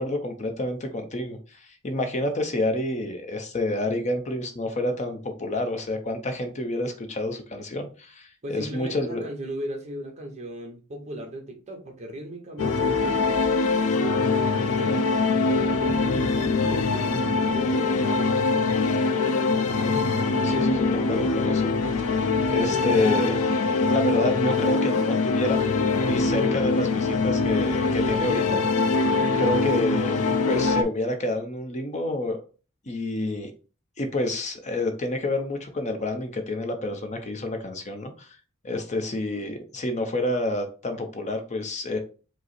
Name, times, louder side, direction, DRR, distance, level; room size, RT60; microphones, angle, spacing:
voice 1, 0.0-9.2 19.8-20.1 20.4-21.7 22.0-22.1 22.5-23.4 23.9-25.6 25.9-28.6 29.4-32.4 32.9-33.5 34.0-38.4 38.6-42.0, left 1 dB, 30° left, 6 dB, 0.6 m, -29 dB
voice 2, 8.4-13.2 13.9-15.2 15.8-18.8, right 1 dB, 30° right, 3 dB, 0.9 m, -37 dB
sound 1, 12.6-30.8, left 3 dB, 75° left, 0.5 m, -23 dB
5.1 x 2.0 x 4.1 m, 0.36 s
head